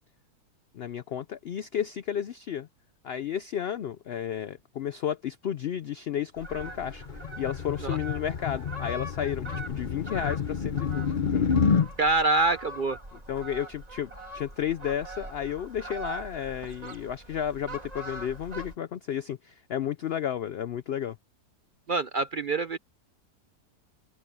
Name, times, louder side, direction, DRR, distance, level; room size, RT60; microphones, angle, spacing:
voice 1, 0.7-2.7 3.0-7.0 7.4-11.0 11.3-11.5 13.3-21.2, left 9 dB, 85° left, 0.5 m, -32 dB
Fowl, 6.3-18.8, right 1 dB, 25° right, 3.2 m, -42 dB
sound 1, 6.6-11.9, left 6 dB, 40° left, 0.7 m, -28 dB
voice 2, 12.0-13.0 21.9-22.8, right 3 dB, 50° right, 0.6 m, -25 dB
omnidirectional pair, 1.7 m